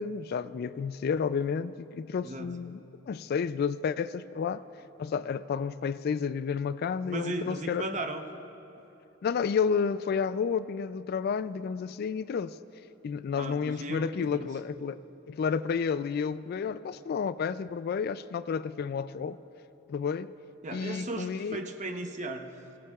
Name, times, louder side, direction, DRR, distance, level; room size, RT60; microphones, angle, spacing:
voice 1, 0.0-4.6 5.0-7.9 9.2-12.6 13.0-15.0 15.3-19.4 19.9-20.3 20.7-21.6, left 6 dB, 55° left, 0.3 m, -31 dB
voice 2, 2.2-2.5 7.0-8.2 13.4-14.5 20.6-22.5, right 2 dB, 40° right, 0.8 m, -36 dB
23.0 x 16.5 x 2.4 m
head